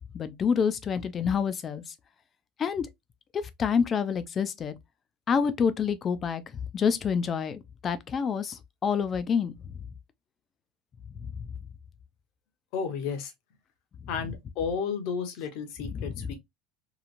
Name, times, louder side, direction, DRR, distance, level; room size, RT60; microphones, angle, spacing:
voice 1, 0.1-1.8 2.6-2.9 3.6-4.7 5.3-6.4 6.7-9.5 11.2-11.3 15.8-16.3, left 6 dB, 30° left, 0.4 m, -27 dB
voice 2, 12.7-13.3 14.1-16.3, left 6 dB, 65° left, 0.8 m, -32 dB
3.0 x 2.3 x 2.5 m
supercardioid pair, 130°, 0 cm